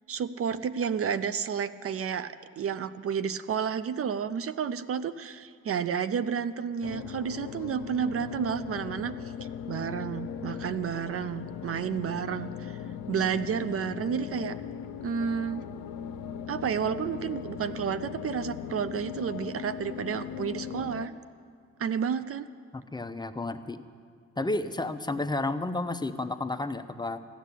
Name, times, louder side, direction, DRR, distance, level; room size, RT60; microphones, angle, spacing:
voice 1, 0.1-9.1 9.7-12.8 13.1-14.6 15.0-15.6 16.5-21.1 21.8-22.5, right 7 dB, 50° right, 14 dB, 0.5 m, -31 dB
sound 1, 6.8-21.1, left 8 dB, 90° left, 0.6 m, -39 dB
voice 2, 22.7-23.8 24.4-27.2, left 2 dB, 15° left, 9 dB, 0.6 m, -31 dB
15.5 x 10.0 x 8.3 m, 2.2 s
cardioid pair, 90°, 30 cm